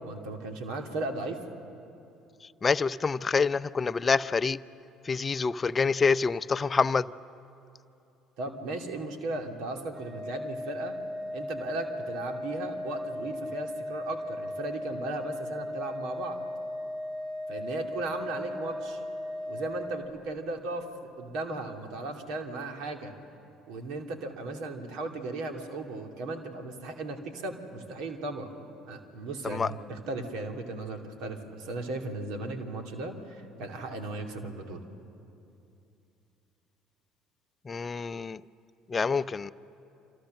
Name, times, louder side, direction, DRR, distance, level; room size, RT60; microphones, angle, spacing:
voice 1, 0.0-1.4 8.4-10.9 11.3-16.4 17.5-19.0 19.5-23.1 23.7-28.5 28.9-34.8, right 2 dB, 65° right, 4 dB, 2.7 m, -36 dB
voice 2, 2.6-4.6 5.0-7.1 29.4-29.7 37.7-38.4 38.9-39.5, left 5 dB, 30° left, 14 dB, 0.6 m, -26 dB
Organ, 9.9-20.6, left 1 dB, 40° right, 3.5 m, -37 dB
27.5 x 26.5 x 6.5 m, 2.7 s
hypercardioid pair, 55°, 0 cm